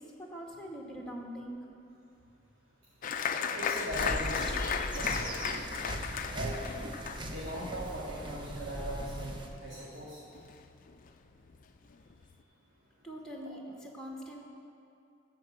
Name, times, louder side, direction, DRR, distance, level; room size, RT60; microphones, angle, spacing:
voice 1, 0.0-1.7 13.0-14.4, equal, 5° left, -1 dB, 1.3 m, -43 dB
Applause, 3.0-10.1 10.3-11.1 11.5-11.6 11.9-12.3, left 6 dB, 40° left, 0.4 m, -35 dB
voice 2, 3.5-4.7 5.0-5.4 6.3-6.5 7.3-9.3 9.6-10.2, right 1 dB, 55° right, -8 dB, 2.0 m, -39 dB
sound 1, 3.9-9.5, right 1 dB, 25° right, 0.8 m, -39 dB
13.5 x 4.5 x 7.6 m, 2.5 s
head